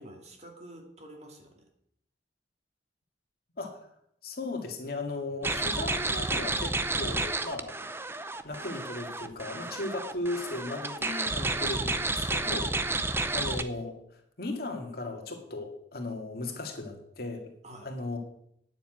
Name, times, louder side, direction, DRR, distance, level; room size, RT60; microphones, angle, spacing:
voice 1, 0.0-1.7 12.8-13.1 17.6-17.9, right 1 dB, 35° right, 2 dB, 2.3 m, -48 dB
voice 2, 3.6-3.9 4.2-7.7 8.4-12.7 13.3-13.9 14.4-17.5 17.8-18.2, left 2 dB, 55° left, 3 dB, 2.1 m, -36 dB
sound 1, 5.4-13.6, right 2 dB, 15° right, 0.6 m, -31 dB
9.5 x 7.2 x 9.0 m, 0.72 s
head